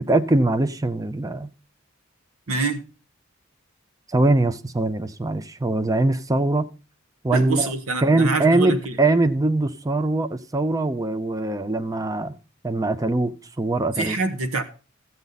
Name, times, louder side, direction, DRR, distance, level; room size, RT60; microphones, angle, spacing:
voice 1, 0.1-1.5 4.1-6.7 7.2-7.7 8.0-12.4 12.6-14.2, right 2 dB, 15° right, 0.5 m, -22 dB
voice 2, 2.5-2.8 7.3-9.0 14.0-14.6, right 3 dB, 85° right, 1.2 m, -25 dB
13.5 x 8.3 x 4.0 m
head